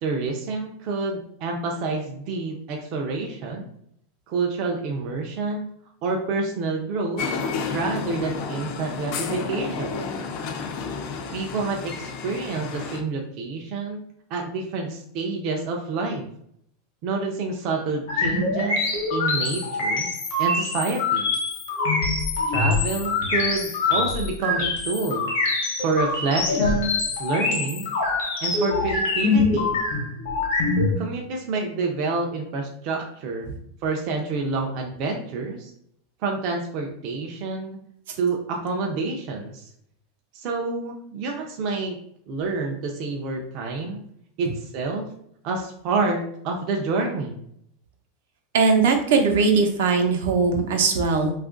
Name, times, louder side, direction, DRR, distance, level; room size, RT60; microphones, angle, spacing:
voice 1, 0.0-3.6 4.3-5.7 6.0-7.2 7.7-10.0 11.3-14.0 14.3-16.3 17.0-18.8 19.1-20.1 20.4-21.3 22.5-25.3 25.8-27.9 28.4-29.7 31.0-33.6 33.8-35.7 36.2-37.8 38.2-39.7 40.3-42.0 42.3-44.0 44.4-45.1 45.4-47.4, right 3 dB, 35° right, 1 dB, 0.4 m, -28 dB
sound 1, 7.2-13.0, left 5 dB, 35° left, 0.3 m, -31 dB
sound 2, 18.1-30.9, left 3 dB, 70° left, 0.9 m, -24 dB
voice 2, 48.5-51.3, right 4 dB, 75° right, 4 dB, 0.7 m, -20 dB
2.8 x 2.4 x 3.7 m, 0.69 s
supercardioid pair, 175°, 0 cm